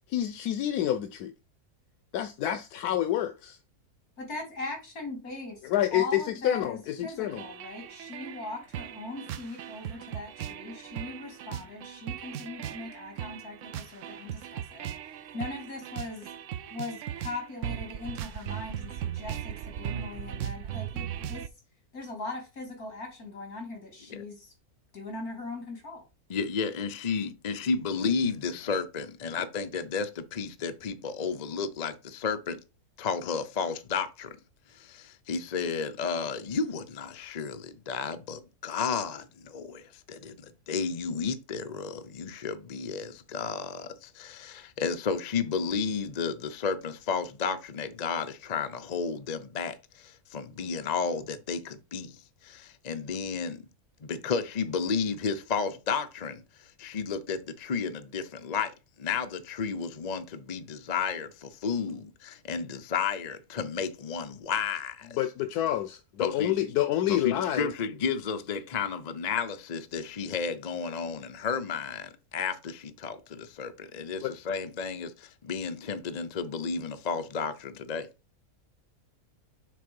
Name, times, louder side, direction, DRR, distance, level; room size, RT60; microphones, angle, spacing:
voice 1, 0.1-1.3 2.1-3.6 5.7-7.4 65.1-67.7 74.2-74.3, left 12 dB, 85° left, 1.2 m, -28 dB
voice 2, 4.2-5.5 5.9-16.3 16.7-21.5 21.9-24.5 24.9-26.0, left 2 dB, 70° left, 3.2 m, -40 dB
sound 1, 7.3-21.5, right 10 dB, 65° right, 0.8 m, -38 dB
voice 3, 26.3-32.6 33.0-34.4 34.7-53.6 54.0-65.1 66.2-66.5 67.1-78.1, left 5 dB, 40° left, 0.6 m, -32 dB
6.6 x 3.9 x 5.3 m
omnidirectional pair, 1.6 m